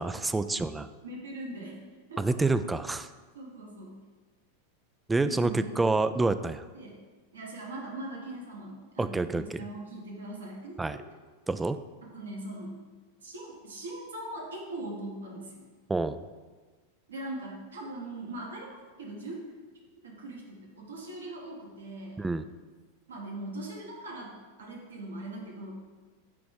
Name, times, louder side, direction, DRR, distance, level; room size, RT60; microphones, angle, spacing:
voice 1, 0.0-0.9 2.2-3.1 5.1-6.6 9.0-9.6 10.8-11.0 11.5-11.8 15.9-16.2 22.2-22.4, right 3 dB, 10° right, 12 dB, 0.3 m, -27 dB
voice 2, 1.0-1.8 2.1-2.5 3.3-4.0 5.2-5.7 6.7-7.0 7.3-11.0 12.0-12.8 13.2-15.6 17.1-19.4 20.0-22.2 23.1-25.7, right 1 dB, 70° right, -1 dB, 1.3 m, -41 dB
9.0 x 3.0 x 5.0 m, 1.4 s
figure-of-eight pair, 90°, 0 cm